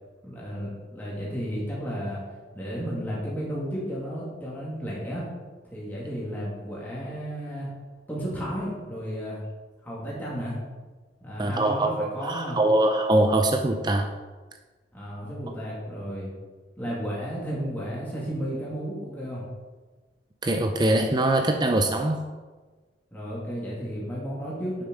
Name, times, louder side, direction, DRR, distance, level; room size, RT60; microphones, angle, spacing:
voice 1, 0.2-2.2 2.5-5.3 5.7-7.7 8.1-9.4 9.8-10.6 11.2-12.6 14.9-16.3 16.8-19.4 23.1-24.8, equal, 10° left, -7 dB, 2.5 m, -33 dB
voice 2, 11.4-14.1 20.4-22.2, right 1 dB, 25° right, 5 dB, 0.5 m, -23 dB
8.0 x 6.8 x 5.3 m, 1.3 s
head